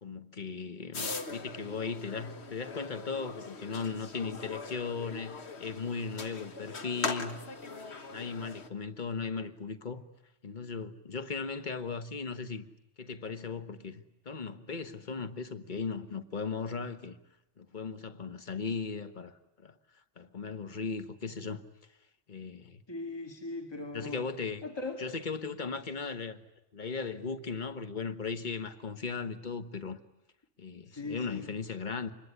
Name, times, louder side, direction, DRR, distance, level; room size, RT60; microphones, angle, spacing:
voice 1, 0.0-7.4 8.1-10.0 10.4-12.7 13.0-17.2 17.6-19.3 19.6-19.7 20.2-21.6 22.3-22.8 23.9-24.6 25.0-26.4 26.7-30.0 30.6-32.1, left 5 dB, 40° left, 1.5 m, -37 dB
sound 1, 0.9-8.7, left 4 dB, 65° left, 1.8 m, -41 dB
voice 2, 22.9-24.3 24.6-25.2 30.9-31.5, left 3 dB, 20° left, 2.4 m, -39 dB
26.0 x 22.0 x 9.9 m
omnidirectional pair, 1.2 m